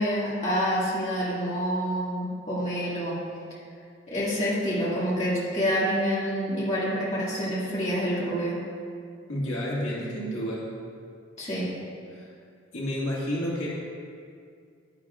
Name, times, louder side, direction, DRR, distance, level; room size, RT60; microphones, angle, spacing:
voice 1, 0.0-3.2 4.1-8.6 11.4-11.7, equal, 35° left, -8 dB, 2.1 m, -27 dB
voice 2, 9.3-10.7 12.1-12.3 12.7-13.7, equal, 80° left, -6 dB, 2.0 m, -30 dB
11.0 x 10.0 x 2.5 m, 2.2 s
head